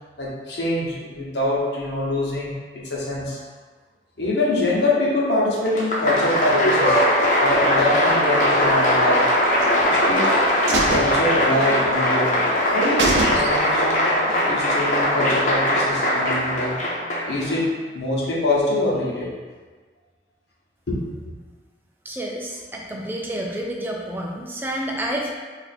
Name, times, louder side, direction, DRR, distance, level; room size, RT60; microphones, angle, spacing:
voice 1, 0.2-3.4 4.2-7.0 7.4-9.3 9.8-10.4 10.9-14.0 14.5-16.8 17.2-19.3 20.9-21.1, left 2 dB, 70° left, -5 dB, 0.8 m, -24 dB
Applause, 5.7-17.6, left 1 dB, 45° left, 0.5 m, -20 dB
sound 1, 9.6-10.3 10.7-12.0 12.3-12.4 12.7-12.8 13.0-13.9 14.2-14.3, right 3 dB, 85° right, 0.4 m, -25 dB
voice 2, 22.0-25.3, right 1 dB, 10° right, -1 dB, 0.3 m, -29 dB
2.4 x 2.4 x 4.0 m, 1.4 s
head